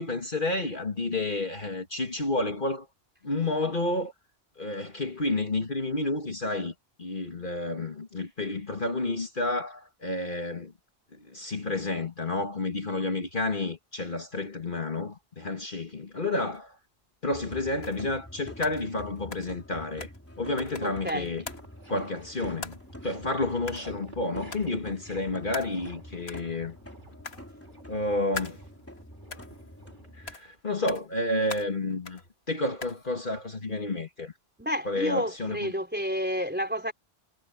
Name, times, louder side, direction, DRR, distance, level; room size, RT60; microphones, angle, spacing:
voice 1, 0.0-2.9 3.2-4.1 4.6-6.7 7.0-10.7 11.1-16.8 17.2-20.1 20.4-21.4 21.9-22.8 23.0-26.8 27.9-28.6 30.1-32.2 32.5-34.3 34.9-35.6, left 2 dB, 50° left, 2.1 m, -30 dB
sound 1, 16.5-16.6 17.8-18.3 18.5-20.3 20.6-21.8 22.6-23.1 23.7-24.1 24.5-24.8 25.5-26.0 26.2-26.5 27.2-27.8 28.3-29.0 29.3-29.9 30.3-30.6 30.9-31.2 31.5-32.3 32.8-33.1, left 4 dB, 75° left, 1.9 m, -42 dB
sound 2, 17.3-30.4, equal, 15° left, 3.3 m, -46 dB
voice 2, 20.8-21.3 34.6-36.9, equal, 10° right, 3.8 m, -30 dB
sound 3, 21.4-30.6, right 1 dB, 50° right, 4.2 m, -52 dB
omnidirectional pair, 1.1 m